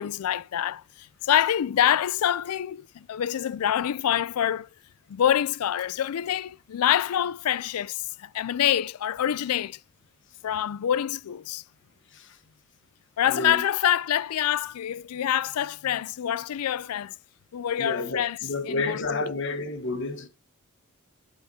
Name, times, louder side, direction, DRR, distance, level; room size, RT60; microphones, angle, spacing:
voice 1, 0.0-4.7 5.1-9.8 10.4-11.6 13.2-17.1 17.5-18.4 18.7-19.3, left 10 dB, 80° left, 0.4 m, -26 dB
voice 2, 13.3-13.6 17.8-20.3, left 3 dB, 55° left, 1.3 m, -30 dB
11.5 x 5.7 x 2.7 m
head